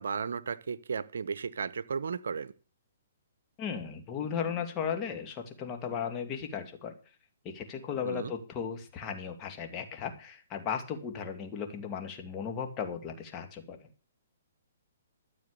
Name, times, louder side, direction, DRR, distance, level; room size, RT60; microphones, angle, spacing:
voice 1, 0.0-2.5 8.0-8.3, right 6 dB, 75° right, 17 dB, 0.8 m, -34 dB
voice 2, 3.6-6.9 7.4-13.9, left 7 dB, 25° left, 5 dB, 2.3 m, -36 dB
13.5 x 7.1 x 6.7 m, 0.37 s
hypercardioid pair, 140°, 0 cm